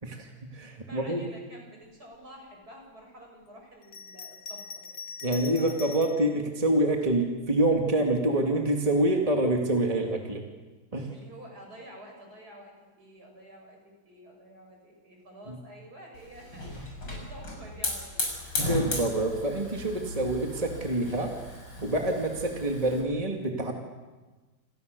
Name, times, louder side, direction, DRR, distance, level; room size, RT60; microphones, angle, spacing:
voice 1, 0.0-1.2 5.2-10.4 10.9-11.1 15.5-15.6 18.6-21.3 21.8-23.7, right 1 dB, 20° right, 1 dB, 2.5 m, -26 dB
voice 2, 0.7-6.0 11.1-18.3, right 1 dB, 60° right, 1 dB, 8.0 m, -49 dB
Bell, 3.8-6.3 7.0-7.9, left 5 dB, 65° left, 1.7 m, -43 dB
Hiss / Fire, 16.2-23.0, left 2 dB, 85° left, 7.5 m, -35 dB
28.5 x 28.0 x 6.9 m, 1.3 s
omnidirectional pair, 1.8 m